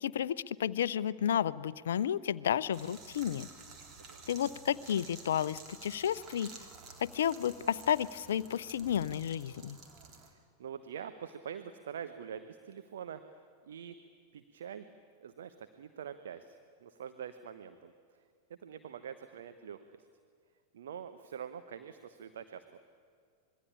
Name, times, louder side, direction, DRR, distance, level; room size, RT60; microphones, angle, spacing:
voice 1, 0.0-3.5 4.3-6.5 7.0-9.8, left 9 dB, 60° left, 18 dB, 0.6 m, -32 dB
sound 1, 2.7-10.3, right 4 dB, 30° right, 3.5 m, -51 dB
voice 2, 10.2-13.4 13.6-14.0 14.3-14.8 15.2-17.9 18.6-19.8 20.7-22.8, right 8 dB, 60° right, 9 dB, 1.1 m, -45 dB
25.5 x 22.0 x 8.6 m, 2.2 s
figure-of-eight pair, 90°, 0 cm